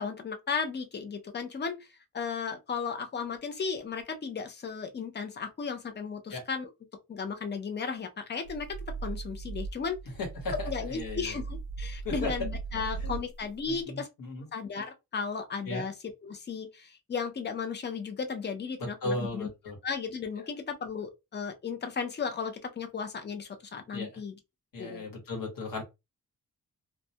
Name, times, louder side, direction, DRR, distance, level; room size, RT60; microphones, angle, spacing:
voice 1, 0.0-1.9 2.1-6.7 7.1-10.0 10.6-14.1 14.5-15.9 16.2-19.5 19.8-24.3 24.8-25.1, left 5 dB, 30° left, 0.4 m, -35 dB
sound 1, 8.4-13.8, right 4 dB, 85° right, 0.6 m, -38 dB
voice 2, 10.2-11.4 12.0-12.3 12.9-13.2 13.6-14.5 15.7-15.8 19.0-19.8 20.4-20.5 23.9-24.2 24.7-25.8, left 2 dB, 65° left, 1.1 m, -36 dB
2.2 x 2.1 x 2.7 m
wide cardioid pair, 160°, 36 cm